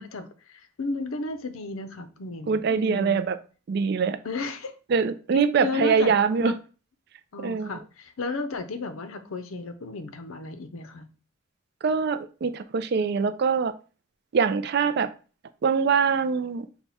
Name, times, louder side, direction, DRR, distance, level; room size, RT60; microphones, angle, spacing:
voice 1, 0.0-3.2 4.2-4.7 5.6-6.1 6.4-6.6 7.3-11.1 13.0-13.2, left 3 dB, 85° left, 9 dB, 0.7 m, -34 dB
voice 2, 2.5-3.4 3.7-4.2 4.9-6.6 7.4-7.7 11.8-13.7 14.3-15.1 15.6-16.7, right 5 dB, 55° right, 10 dB, 0.4 m, -23 dB
5.9 x 2.2 x 4.1 m, 0.36 s
head